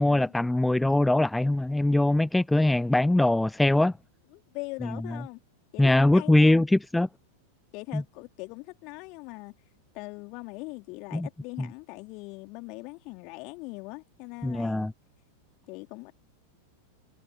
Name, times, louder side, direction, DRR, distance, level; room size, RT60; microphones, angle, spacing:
voice 1, 0.0-3.9 4.8-5.2 5.8-7.1 7.9-8.0 11.1-11.3 11.6-11.7 14.4-14.9, left 1 dB, 5° left, 0.4 m, -22 dB
voice 2, 4.3-5.4 5.7-6.6 7.7-9.5 9.9-14.9 15.7-16.1, left 28 dB, 45° left, 3.7 m, -41 dB
figure-of-eight pair, 90°, 0 cm